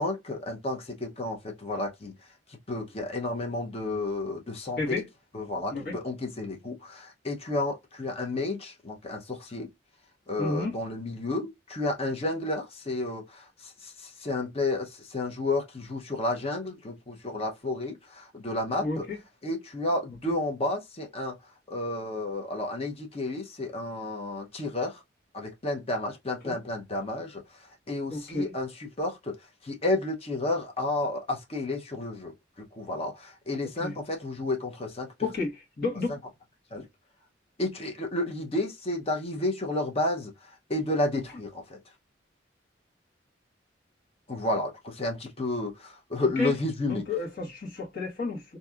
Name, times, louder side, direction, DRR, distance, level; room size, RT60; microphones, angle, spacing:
voice 1, 0.0-2.1 2.5-5.0 5.3-9.7 10.3-19.1 19.4-21.4 21.7-25.0 25.3-29.4 29.6-35.3 36.1-36.2 36.7-36.9 37.6-41.8 44.3-47.0, left 2 dB, 30° left, 0.7 m, -31 dB
voice 2, 10.4-10.7 18.8-19.2 26.4-26.5 28.1-28.5 33.8-33.9 35.2-36.1 46.4-46.5 46.8-48.4, left 3 dB, 50° left, 1.4 m, -31 dB
2.9 x 2.7 x 2.4 m
head